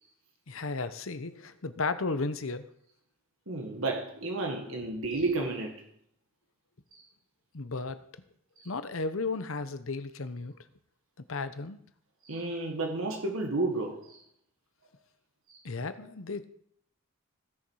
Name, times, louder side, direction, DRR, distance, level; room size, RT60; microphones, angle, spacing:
voice 1, 0.5-2.7 7.5-8.0 8.6-10.6 11.3-11.8 15.6-16.5, left 3 dB, 70° left, 0.9 m, -34 dB
voice 2, 3.5-5.8 6.9-7.0 8.6-8.7 12.3-14.2 15.5-15.6, right 2 dB, 70° right, 1.7 m, -32 dB
16.0 x 7.2 x 4.8 m
head